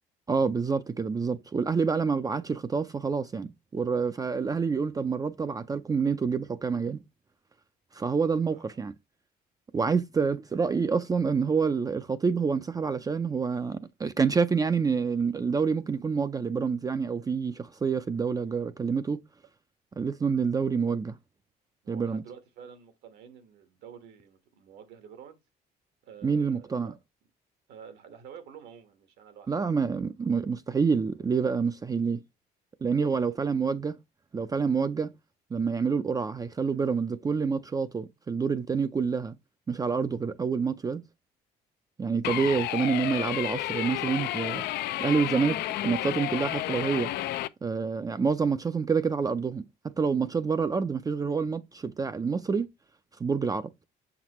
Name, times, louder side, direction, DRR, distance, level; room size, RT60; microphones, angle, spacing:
voice 1, 0.3-7.0 7.9-8.9 9.7-19.2 20.0-21.2 21.9-22.2 26.2-26.9 29.5-32.2 32.8-34.0 34.3-35.1 35.5-39.4 39.7-41.0 42.0-44.6 45.0-47.1 47.6-52.7 53.2-53.7, right 5 dB, 20° right, 0.4 m, -27 dB
voice 2, 8.5-8.9 21.8-25.4 26.0-27.0 27.7-29.5 33.0-33.5, right 8 dB, 80° right, 1.5 m, -49 dB
sound 1, 42.2-47.5, left 14 dB, 75° left, 0.5 m, -31 dB
7.1 x 5.9 x 3.0 m
cardioid pair, 110°, 17 cm